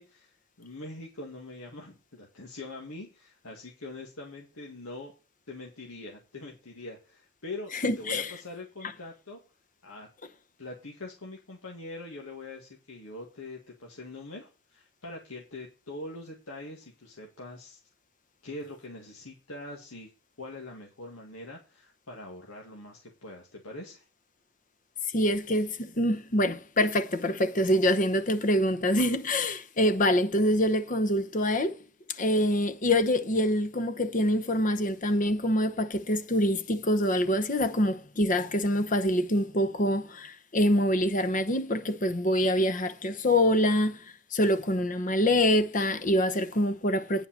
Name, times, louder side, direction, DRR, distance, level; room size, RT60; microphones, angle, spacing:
voice 1, 0.0-5.1 5.5-9.4 9.8-10.1 10.6-17.8 18.4-20.1 20.4-24.0, left 2 dB, 85° left, 2.0 m, -43 dB
voice 2, 7.8-8.3 25.1-31.8 32.2-44.0 44.3-47.3, left 1 dB, 40° left, 0.9 m, -25 dB
9.6 x 5.5 x 7.5 m
head